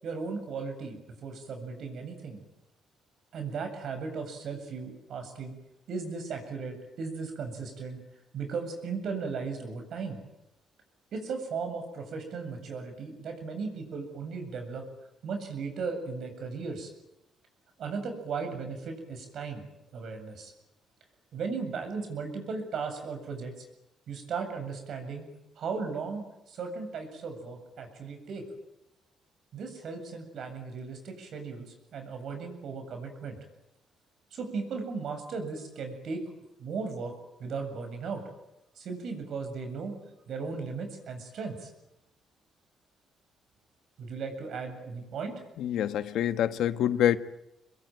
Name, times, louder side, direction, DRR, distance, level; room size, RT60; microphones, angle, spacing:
voice 1, 0.0-2.4 3.3-5.5 5.9-8.0 8.3-10.2 11.1-14.8 15.2-16.9 17.8-19.6 19.9-20.5 21.3-23.5 24.1-25.2 25.6-28.4 29.5-33.4 34.3-36.2 36.6-37.1 37.4-38.2 38.8-39.9 40.3-41.7 44.0-45.4, right 5 dB, 65° right, 7.8 m, -36 dB
voice 2, 45.6-47.2, left 11 dB, 80° left, 1.3 m, -26 dB
26.5 x 22.0 x 9.4 m
cardioid pair, 90°, 0 cm